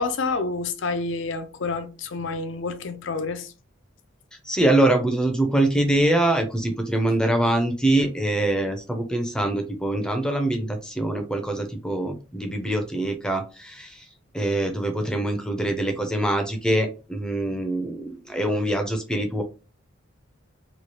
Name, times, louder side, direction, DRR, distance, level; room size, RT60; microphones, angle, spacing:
voice 1, 0.0-3.5, left 3 dB, 65° left, 0.5 m, -28 dB
voice 2, 4.4-14.0 14.3-19.4, right 1 dB, 5° left, 0.5 m, -24 dB
3.0 x 2.3 x 2.8 m
head